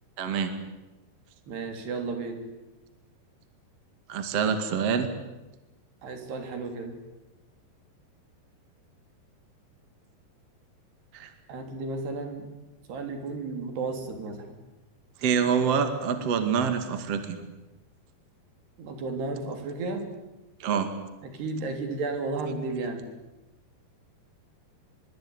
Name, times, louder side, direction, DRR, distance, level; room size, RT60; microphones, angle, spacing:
voice 1, 0.2-0.5 4.1-5.1 11.1-11.3 15.2-17.5 20.6-20.9, right 6 dB, 45° right, 8 dB, 2.6 m, -26 dB
voice 2, 1.5-2.4 6.0-6.9 11.5-12.5 12.9-14.5 18.8-20.1 21.2-23.1, right 3 dB, 65° right, 5 dB, 5.3 m, -33 dB
24.0 x 23.0 x 9.7 m, 1.1 s
omnidirectional pair, 5.1 m